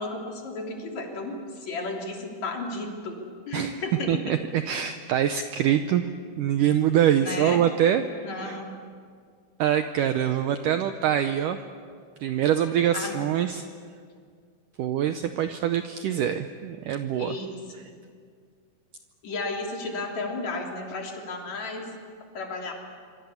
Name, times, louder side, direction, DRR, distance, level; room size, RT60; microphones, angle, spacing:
voice 1, 0.0-3.2 3.5-4.3 7.2-7.6 8.2-8.7 12.9-13.1 17.2-17.9 19.2-21.9 22.3-22.7, left 2 dB, 45° left, 0 dB, 4.1 m, -33 dB
voice 2, 4.1-6.1 6.4-8.1 8.3-8.6 9.6-11.6 12.2-13.7 14.8-17.4, right 10 dB, 90° right, 8 dB, 1.8 m, -24 dB
26.5 x 25.0 x 7.2 m, 2.1 s
omnidirectional pair, 4.8 m